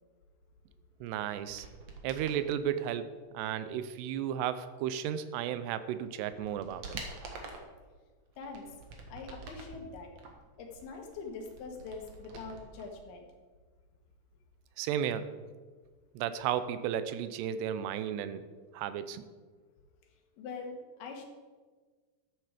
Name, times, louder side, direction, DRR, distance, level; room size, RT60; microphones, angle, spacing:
voice 1, 1.0-1.7 2.0-3.1 3.3-7.0 14.8-15.3 16.2-18.4 18.7-19.2, right 9 dB, 90° right, 12 dB, 2.8 m, -34 dB
sound 1, 1.5-2.4 5.5-5.6 6.1-7.7 8.3-9.8 10.2-12.9 13.1-13.2, right 3 dB, 55° right, 1.9 m, -47 dB
voice 2, 8.4-8.8 9.1-10.1 10.6-13.3 20.4-21.3, left 4 dB, 70° left, 3 dB, 3.3 m, -43 dB
13.0 x 8.8 x 5.0 m, 1.4 s
omnidirectional pair, 4.8 m